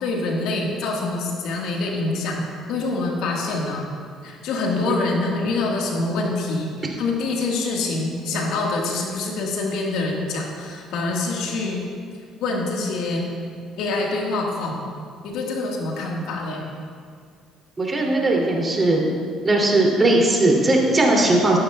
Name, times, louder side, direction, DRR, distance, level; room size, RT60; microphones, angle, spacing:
voice 1, 0.0-3.9 4.2-11.9 12.4-13.2 13.8-14.8 15.2-16.7, left 3 dB, 70° left, -1 dB, 1.7 m, -25 dB
voice 2, 17.8-19.0 19.4-21.6, right 2 dB, 30° right, -2 dB, 3.0 m, -18 dB
14.0 x 12.5 x 2.4 m, 2.2 s
hypercardioid pair, 60°, 0 cm